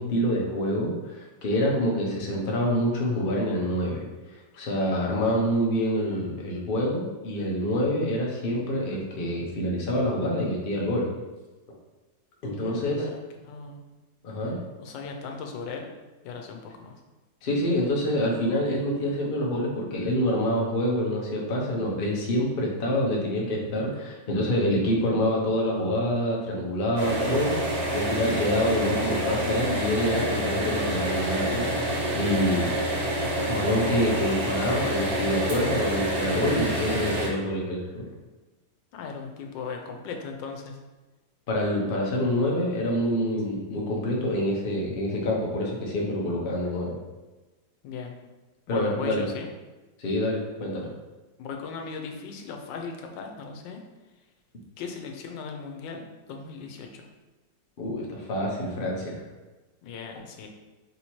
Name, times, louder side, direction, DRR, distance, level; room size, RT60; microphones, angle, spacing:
voice 1, 0.0-4.0 4.5-11.1 12.4-13.1 14.2-14.6 17.4-27.5 27.9-32.7 33.4-38.0 41.5-46.9 48.7-49.2 50.0-50.9 57.8-59.2, equal, 45° left, -2 dB, 0.7 m, -26 dB
voice 2, 12.6-13.2 13.4-13.8 14.8-15.9 16.2-16.9 38.9-40.8 47.8-48.1 48.7-49.5 51.4-53.8 54.8-57.1 59.8-60.5, left 5 dB, 90° left, 3 dB, 1.3 m, -38 dB
sound 1, 27.0-37.3, right 1 dB, 65° right, 1.5 m, -27 dB
3.8 x 2.8 x 4.4 m, 1.2 s
omnidirectional pair, 1.9 m